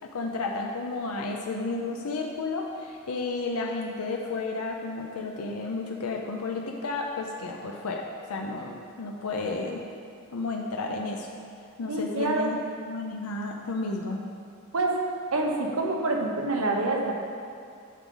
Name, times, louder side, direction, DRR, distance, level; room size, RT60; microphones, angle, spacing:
voice 1, 0.0-8.0 8.3-9.8 10.3-11.3 11.8-12.6 12.8-14.2, left 3 dB, 85° left, 1 dB, 0.6 m, -32 dB
voice 2, 11.9-12.6 14.7-15.0 15.3-17.1, right 2 dB, 75° right, 0 dB, 1.0 m, -26 dB
9.0 x 6.2 x 3.9 m, 2.4 s
head